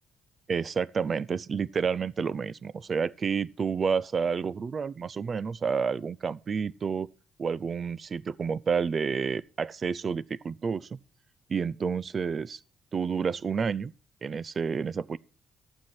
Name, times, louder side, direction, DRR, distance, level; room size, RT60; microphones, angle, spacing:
voice 1, 0.5-7.1 7.4-11.0 11.5-12.6 12.9-13.9 14.2-15.2, right 6 dB, 45° right, 0.5 m, -29 dB
11.5 x 7.6 x 6.0 m
cardioid pair, 90°, 0 cm